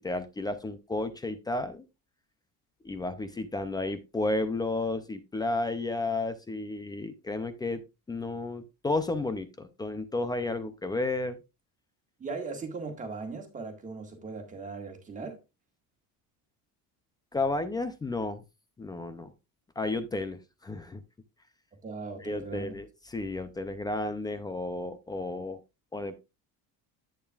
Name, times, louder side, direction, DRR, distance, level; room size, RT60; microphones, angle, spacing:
voice 1, 0.0-1.8 2.8-7.8 8.1-11.4 17.3-18.4 18.8-19.3 19.8-21.0 22.2-25.6 25.9-26.2, left 2 dB, 10° left, 0.4 m, -32 dB
voice 2, 12.2-15.4 21.8-22.7, right 4 dB, 20° right, 1.7 m, -38 dB
10.0 x 8.8 x 2.3 m
cardioid pair, 180°, 38 cm